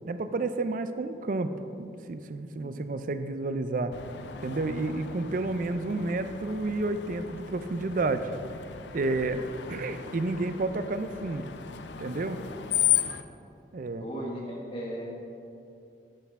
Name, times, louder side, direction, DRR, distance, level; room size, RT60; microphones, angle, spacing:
voice 1, 0.0-1.5 1.8-3.9 4.4-8.3 8.9-9.4 9.7-11.5 12.0-12.4 13.7-14.0, right 2 dB, 50° right, 10 dB, 0.4 m, -30 dB
Screech, 3.9-13.2, left 11 dB, 80° left, 0.5 m, -35 dB
voice 2, 12.5-12.9 14.0-15.0, equal, 30° left, -3 dB, 1.7 m, -37 dB
11.5 x 7.9 x 3.5 m, 2.6 s
head